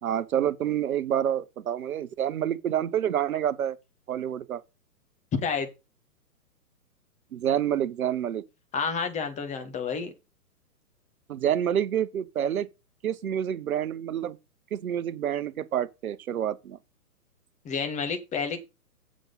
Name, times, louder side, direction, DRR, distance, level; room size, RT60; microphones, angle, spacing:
voice 1, 0.0-3.8 4.1-4.6 7.3-8.4 11.3-12.7 13.0-14.4 14.7-16.8, right 10 dB, 60° right, 1.0 m, -28 dB
voice 2, 5.3-5.7 8.7-10.1 17.6-18.6, left 5 dB, 15° left, 1.3 m, -29 dB
7.8 x 6.1 x 5.4 m
figure-of-eight pair, 125°, 47 cm